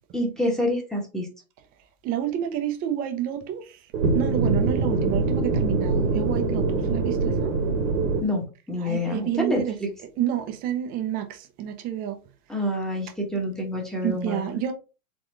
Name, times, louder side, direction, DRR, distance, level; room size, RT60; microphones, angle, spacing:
voice 1, 0.1-1.3 8.2-9.9 12.5-14.6, left 1 dB, ahead, 1.1 m, -27 dB
voice 2, 2.0-3.6 4.1-7.5 8.8-9.8 10.2-11.3 11.6-12.2 14.0-14.7, right 10 dB, 20° right, 0.6 m, -29 dB
sound 1, 3.9-8.2, right 3 dB, 60° right, 1.3 m, -24 dB
4.0 x 3.9 x 3.2 m
hypercardioid pair, 135°, 43 cm